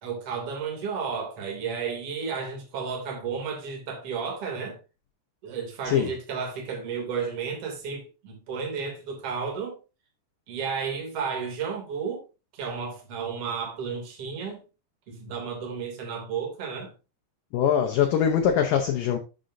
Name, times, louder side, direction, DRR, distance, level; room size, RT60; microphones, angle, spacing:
voice 1, 0.0-4.8 5.4-9.7 10.5-12.2 12.5-14.6 15.1-16.9, right 6 dB, 40° right, 3.2 m, -32 dB
voice 2, 17.5-19.2, left 8 dB, 75° left, 2.0 m, -22 dB
11.5 x 6.5 x 2.7 m
omnidirectional pair, 5.0 m